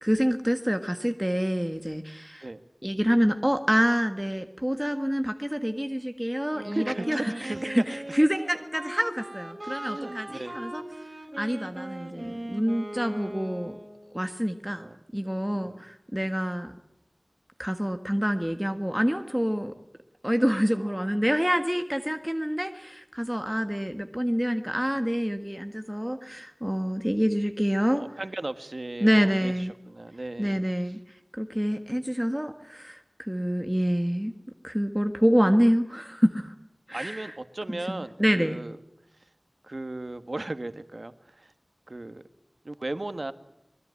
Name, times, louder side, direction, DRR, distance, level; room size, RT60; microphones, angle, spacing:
voice 1, 0.0-2.5 2.8-10.8 11.4-13.7 14.1-14.9 15.1-16.7 17.6-19.7 20.2-28.0 29.0-29.7 30.4-31.0 31.4-34.3 34.6-36.5 36.9-37.3 37.7-38.6, equal, 5° right, 6 dB, 1.6 m, -27 dB
Wind instrument woodwind instrument, 6.5-14.2, right 1 dB, 35° right, 4.9 m, -39 dB
voice 2, 6.7-8.2 9.6-10.5 14.7-14.9 15.5-15.9 27.9-29.5 29.9-30.6 36.9-38.8 39.6-41.5 41.9-42.2 42.6-43.3, right 2 dB, 60° right, 11 dB, 1.6 m, -36 dB
25.5 x 21.5 x 9.7 m, 0.83 s
wide cardioid pair, 50°, 0 cm